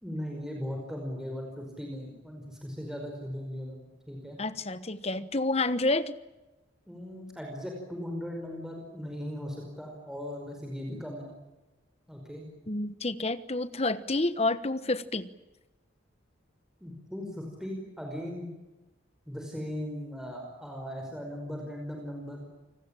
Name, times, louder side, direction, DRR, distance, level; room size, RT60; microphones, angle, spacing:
voice 1, 0.0-4.4 6.9-11.3 12.1-12.5 16.8-18.5 19.3-22.4, equal, 5° right, 1 dB, 5.2 m, -38 dB
voice 2, 4.4-6.1 12.7-15.3, left 2 dB, 30° left, 14 dB, 1.2 m, -29 dB
28.5 x 20.0 x 9.0 m, 1.1 s
head